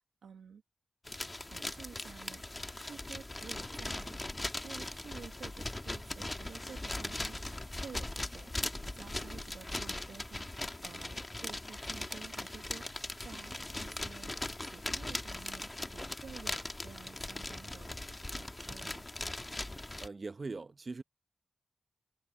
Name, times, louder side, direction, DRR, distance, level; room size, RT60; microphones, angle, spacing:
voice 1, 0.2-0.6 1.4-2.4 2.8-4.2 4.6-7.4 7.8-8.6 8.8-10.5 10.8-12.8 13.2-19.1, right 6 dB, 85° right, 1.7 m, -51 dB
sound 1, 1.1-20.1, left 1 dB, 25° left, 1.6 m, -40 dB
voice 2, 20.0-21.0, right 3 dB, 50° right, 0.9 m, -41 dB
cardioid pair, 40°, 0 cm